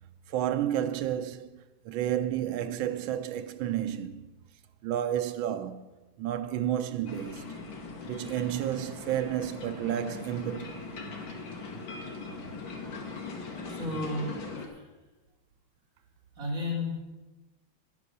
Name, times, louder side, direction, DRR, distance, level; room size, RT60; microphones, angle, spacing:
voice 1, 0.3-4.3 4.8-5.9 6.2-7.5 8.1-10.8, right 11 dB, 90° right, 1.5 m, -31 dB
sound 1, 7.1-14.7, left 3 dB, 80° left, 2.4 m, -40 dB
voice 2, 13.7-14.3 14.7-14.8 16.4-17.0, left 2 dB, 45° right, 3.8 m, -32 dB
11.0 x 9.9 x 6.6 m
omnidirectional pair, 2.1 m